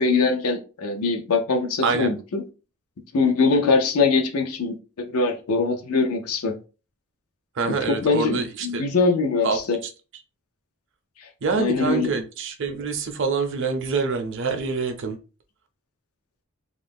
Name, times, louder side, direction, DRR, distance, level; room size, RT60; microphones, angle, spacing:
voice 1, 0.0-2.4 3.1-6.5 7.7-9.8 11.6-12.1, left 4 dB, 85° left, 0.6 m, -22 dB
voice 2, 7.6-8.8 9.4-9.9 11.4-15.2, right 4 dB, 55° right, 0.5 m, -26 dB
2.4 x 2.0 x 3.4 m
head